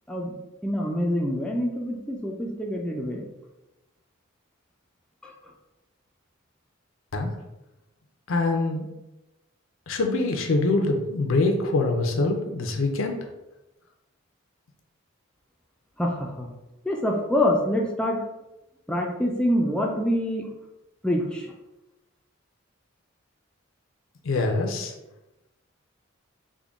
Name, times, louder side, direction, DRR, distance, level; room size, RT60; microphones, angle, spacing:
voice 1, 0.1-3.2 5.2-5.3 16.0-16.5 16.8-18.2 18.9-20.5 21.0-21.5, left 1 dB, 5° left, -1 dB, 0.3 m, -26 dB
voice 2, 8.3-8.9 9.9-13.2 24.2-24.9, left 2 dB, 80° left, 4 dB, 0.5 m, -24 dB
3.6 x 2.2 x 3.5 m, 0.97 s
head